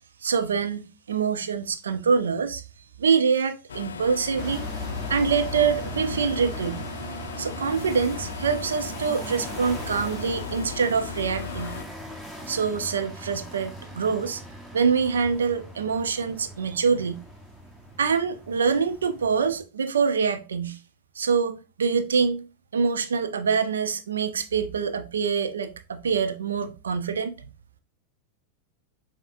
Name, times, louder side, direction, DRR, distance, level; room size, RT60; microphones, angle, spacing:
voice 1, 0.2-2.6 3.0-4.6 5.1-6.8 7.4-11.7 12.5-14.4 14.7-17.2 18.0-20.8 21.2-22.4 22.7-27.3, right 5 dB, 70° right, 0.5 m, -25 dB
sound 1, 3.7-11.8, left 7 dB, 70° left, 0.4 m, -36 dB
sound 2, 4.4-19.6, right 1 dB, 5° right, 1.0 m, -39 dB
6.8 x 2.7 x 2.5 m
figure-of-eight pair, 90°, 0 cm